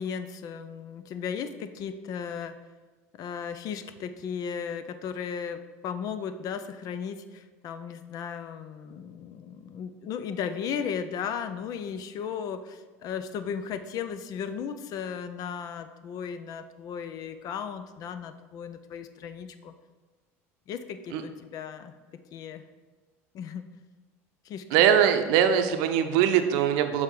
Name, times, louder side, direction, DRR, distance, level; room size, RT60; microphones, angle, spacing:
voice 1, 0.0-2.5 3.2-19.7 20.7-21.9 22.3-22.6 23.3-23.7 24.4-24.8, left 7 dB, 55° left, 10 dB, 0.6 m, -35 dB
voice 2, 24.7-27.0, right 9 dB, 70° right, 8 dB, 0.6 m, -22 dB
6.3 x 3.4 x 5.3 m, 1.3 s
supercardioid pair, 90°, 8 cm